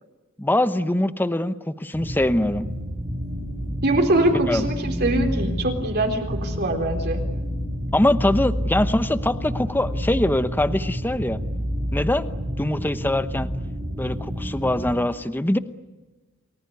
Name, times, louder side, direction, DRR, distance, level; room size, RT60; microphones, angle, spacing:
voice 1, 0.4-2.7 4.3-4.7 7.9-11.4 11.9-12.3 12.6-13.5 14.0-15.6, left 1 dB, 10° left, 12 dB, 0.9 m, -23 dB
sound 1, 1.9-14.9, equal, 30° right, 3.8 m, -29 dB
voice 2, 3.8-7.2, right 1 dB, 50° right, 3 dB, 4.0 m, -23 dB
30.0 x 19.5 x 9.5 m, 1.2 s
head